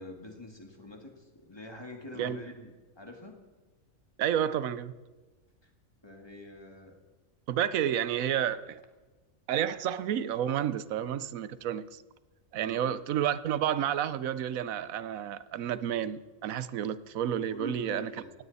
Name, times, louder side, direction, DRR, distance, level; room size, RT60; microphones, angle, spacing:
voice 1, 0.0-3.4 5.6-5.7 6.0-7.0 7.8-7.9 12.6-13.0 17.5-18.3, left 1 dB, 20° left, 2.1 m, -45 dB
voice 2, 4.2-4.9 7.5-8.8 9.5-12.0 12.5-18.1, right 10 dB, 85° right, 1.1 m, -30 dB
17.5 x 16.0 x 4.1 m
omnidirectional pair, 1.4 m